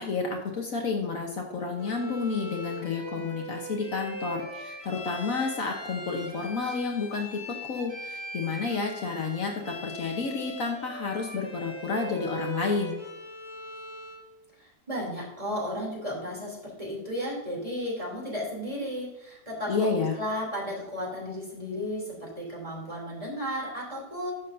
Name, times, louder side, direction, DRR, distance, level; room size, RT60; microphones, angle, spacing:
voice 1, 0.0-13.0 19.7-20.2, left 4 dB, 60° left, 2 dB, 1.4 m, -30 dB
Bowed string instrument, 1.8-14.3, right 1 dB, 30° left, 1.4 m, -40 dB
voice 2, 14.6-19.9 20.2-24.3, equal, 20° right, -3 dB, 3.2 m, -34 dB
11.0 x 7.0 x 2.7 m, 0.96 s
omnidirectional pair, 1.7 m